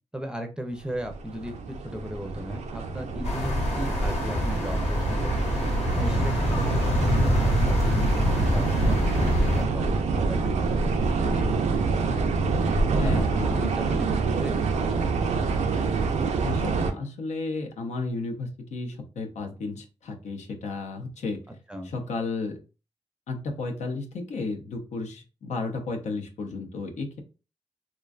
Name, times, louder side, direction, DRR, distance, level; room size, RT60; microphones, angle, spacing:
voice 1, 0.1-5.6 5.9-9.8 10.1-12.2 12.9-15.6 21.7-21.9, equal, 5° right, 5 dB, 0.5 m, -37 dB
sound 1, 1.0-16.9, right 4 dB, 80° right, 0.4 m, -26 dB
sound 2, 3.2-9.6, left 1 dB, 70° left, 0.9 m, -25 dB
voice 2, 12.9-13.6 16.4-21.4 21.8-22.6 23.3-27.2, left 3 dB, 90° left, 2 dB, 0.5 m, -33 dB
2.5 x 2.2 x 2.3 m, 0.33 s
cardioid pair, 75°, 12 cm